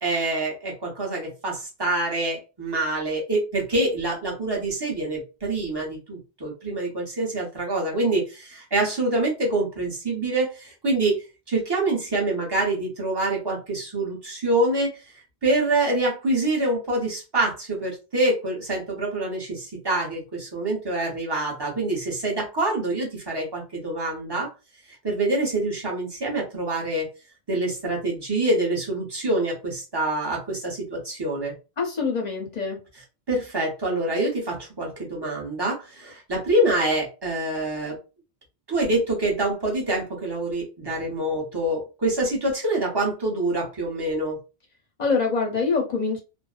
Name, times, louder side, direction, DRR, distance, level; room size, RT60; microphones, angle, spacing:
voice 1, 0.0-14.9 15.4-24.5 25.0-27.1 27.5-31.5 33.3-38.0 38.7-44.4, right 2 dB, 25° right, -2 dB, 0.9 m, -26 dB
voice 2, 31.8-32.8 45.0-46.2, left 4 dB, 45° left, 0 dB, 0.7 m, -24 dB
2.6 x 2.1 x 2.4 m, 0.29 s
omnidirectional pair, 1.2 m